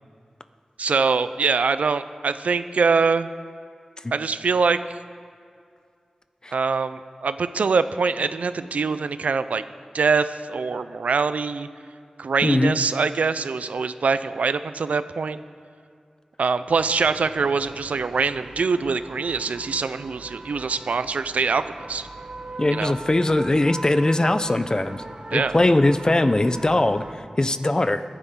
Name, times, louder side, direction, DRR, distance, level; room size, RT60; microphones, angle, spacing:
voice 1, 0.8-3.3 4.1-4.8 6.5-9.6 9.9-11.7 12.2-15.4 16.4-22.1 22.7-22.9 25.3-25.5, right 4 dB, 90° right, 12 dB, 0.5 m, -23 dB
voice 2, 12.4-12.8 22.6-25.0 25.3-27.0 27.4-28.0, left 2 dB, 35° left, 11 dB, 0.7 m, -20 dB
sound 1, 16.7-27.2, right 2 dB, 45° right, 1.3 m, -40 dB
24.0 x 9.9 x 3.8 m, 2.3 s
cardioid pair, 50°, 2 cm